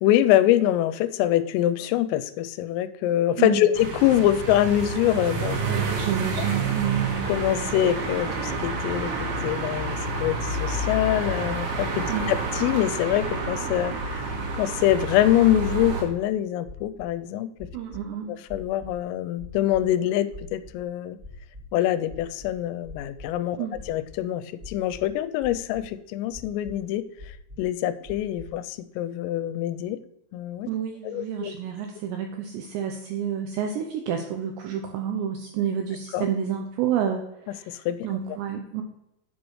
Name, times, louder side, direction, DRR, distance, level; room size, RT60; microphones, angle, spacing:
voice 1, 0.0-5.6 7.3-14.3 14.5-17.5 18.3-21.2 21.7-23.6 23.9-27.0 27.6-30.0 30.3-30.7 31.0-31.5 36.1-36.3 37.7-38.1, left 12 dB, 90° left, 13 dB, 3.2 m, -24 dB
sound 1, 3.7-16.0, right 3 dB, 65° right, 3.8 m, -29 dB
voice 2, 5.6-7.2 12.1-12.3 17.7-18.3 23.6-23.8 30.7-38.8, right 8 dB, 85° right, 4 dB, 2.5 m, -29 dB
sound 2, 12.1-12.6 13.1-13.5 14.0-14.5 14.9-15.3 15.8-16.2 16.6-17.0 17.6-18.0 18.5-19.0 19.4-19.8 20.3-20.8 21.2-21.6 22.1-23.3 23.7-24.2 24.6-25.1 25.4-25.9 26.3-26.7 27.2-27.7 28.0-28.5, left 2 dB, 20° right, 3.4 m, -43 dB
10.5 x 8.2 x 3.1 m, 0.86 s
omnidirectional pair, 5.8 m